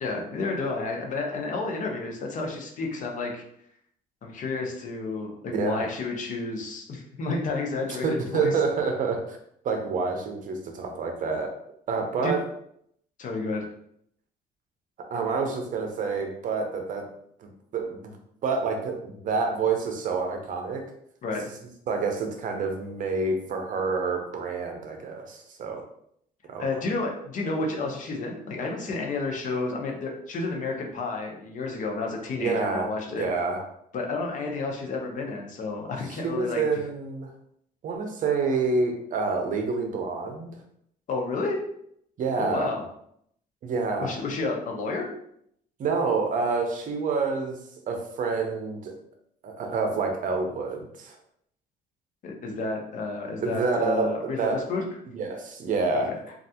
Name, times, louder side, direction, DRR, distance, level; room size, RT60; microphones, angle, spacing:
voice 1, 0.0-3.4 4.2-8.5 12.2-12.3 13.2-13.6 21.2-21.5 26.6-33.3 33.9-36.6 41.1-41.6 42.4-42.8 44.0-45.1 52.2-54.8 56.1-56.2, left 3 dB, 50° left, 1 dB, 0.7 m, -31 dB
voice 2, 5.5-5.9 8.0-9.4 9.6-11.5 11.9-12.4 15.1-17.1 17.4-18.1 18.4-20.8 21.9-25.8 26.5-26.7 32.4-33.6 36.2-37.3 37.8-40.5 42.2-42.7 43.6-44.2 45.8-47.6 47.9-48.9 49.4-51.2 53.4-54.6 55.1-56.1, right 4 dB, 50° right, 3 dB, 0.6 m, -28 dB
3.2 x 2.4 x 2.8 m, 0.71 s
cardioid pair, 110°, 17 cm